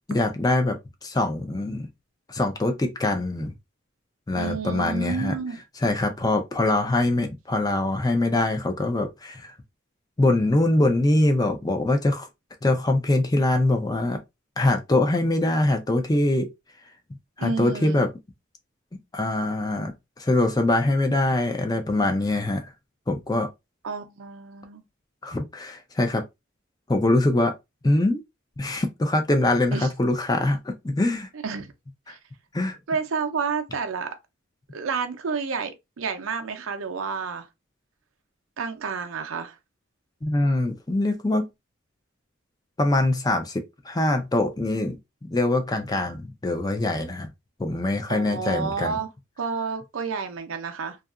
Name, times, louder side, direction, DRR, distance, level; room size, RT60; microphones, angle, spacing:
voice 1, 0.1-0.8 1.0-1.9 2.3-3.5 4.3-5.3 5.8-9.5 10.2-12.3 12.6-14.2 14.6-16.5 17.4-18.1 19.1-19.9 20.2-22.7 23.1-23.5 25.2-26.2 26.9-27.5 27.8-28.2 28.6-31.3 32.1-32.2 32.5-32.8 40.2-41.5 42.8-45.0 45.2-47.3 47.6-49.0, left 2 dB, 20° left, 0.4 m, -23 dB
voice 2, 4.3-5.6 17.4-18.0 23.8-24.8 29.7-29.9 31.4-31.7 32.1-32.2 32.9-34.1 34.7-37.5 38.6-39.6 48.1-49.1 49.4-51.0, right 5 dB, 85° right, 0.5 m, -30 dB
2.8 x 2.4 x 2.3 m
head